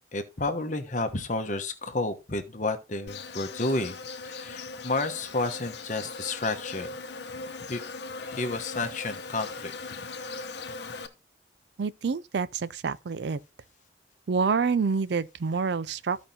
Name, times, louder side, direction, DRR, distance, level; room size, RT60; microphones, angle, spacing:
voice 1, 0.1-3.9 4.2-6.9 7.7-7.8 8.2-9.7, left 2 dB, 45° left, 1.1 m, -31 dB
Insect, 3.1-11.1, left 4 dB, 70° left, 0.9 m, -39 dB
voice 2, 11.8-13.4 14.3-16.3, right 5 dB, 70° right, 0.4 m, -27 dB
14.5 x 5.2 x 2.8 m
head